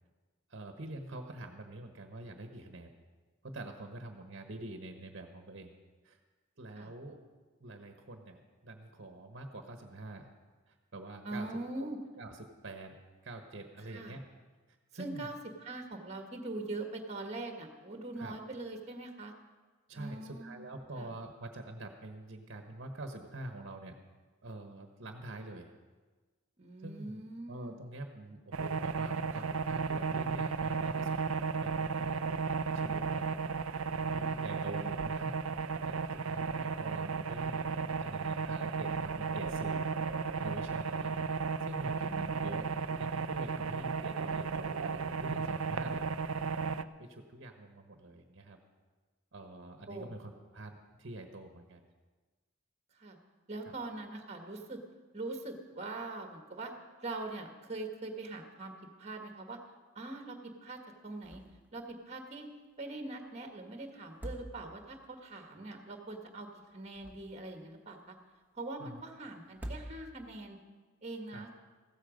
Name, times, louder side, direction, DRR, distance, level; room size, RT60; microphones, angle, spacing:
voice 1, 0.5-2.9 3.4-5.7 6.0-6.2 6.6-7.2 7.6-10.3 10.7-11.6 12.2-13.0 13.2-14.3 14.9-15.3 18.2-18.3 19.9-24.0 24.4-25.7 26.8-27.2 27.5-32.2 32.7-33.3 33.9-39.9 40.4-41.1 41.6-46.1 47.0-48.6 49.3-51.8 53.7-53.8 68.8-69.0 71.3-71.4, right 2 dB, 55° right, 5 dB, 1.3 m, -46 dB
voice 2, 11.2-12.0 13.9-14.2 14.9-15.3 15.6-19.3 19.9-20.6 21.0-21.1 26.6-27.7 42.1-42.7 49.9-50.4 52.9-53.2 53.5-54.8 55.1-56.7 57.0-58.7 59.0-59.6 59.9-61.4 61.7-62.5 62.8-68.1 68.5-70.6 71.0-71.5, right 2 dB, 30° right, 4 dB, 1.6 m, -42 dB
sound 1, 28.5-46.8, right 5 dB, 80° right, 0.5 m, -34 dB
sound 2, 61.2-61.7 62.0-62.1 64.0-65.0 66.7-67.6 69.5-70.4, right 1 dB, 10° right, 1.5 m, -45 dB
15.5 x 13.0 x 5.2 m, 1.3 s
head